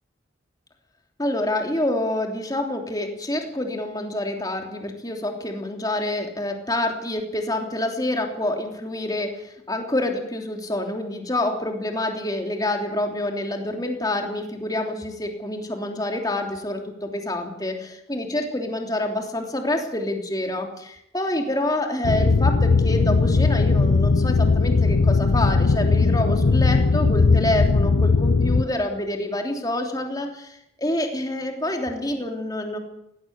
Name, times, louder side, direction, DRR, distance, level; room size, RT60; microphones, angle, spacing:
voice 1, 1.2-32.8, left 1 dB, 20° left, 3 dB, 3.2 m, -27 dB
sound 1, 22.0-28.6, left 4 dB, 85° left, 0.7 m, -18 dB
18.5 x 17.5 x 8.2 m, 0.78 s
head